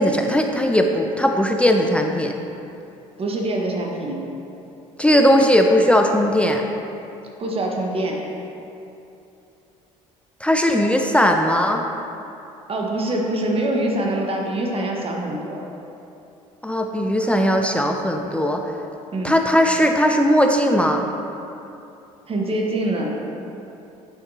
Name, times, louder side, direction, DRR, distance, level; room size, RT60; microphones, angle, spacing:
voice 1, 0.0-2.4 5.0-6.6 10.4-11.8 16.6-18.6 19.2-21.1, equal, 5° left, 3 dB, 0.5 m, -18 dB
voice 2, 3.2-4.2 7.4-8.2 12.7-15.6 19.1-19.3 22.3-23.1, right 1 dB, 35° right, 0 dB, 1.2 m, -24 dB
9.8 x 5.7 x 2.8 m, 2.8 s
hypercardioid pair, 60°, 18 cm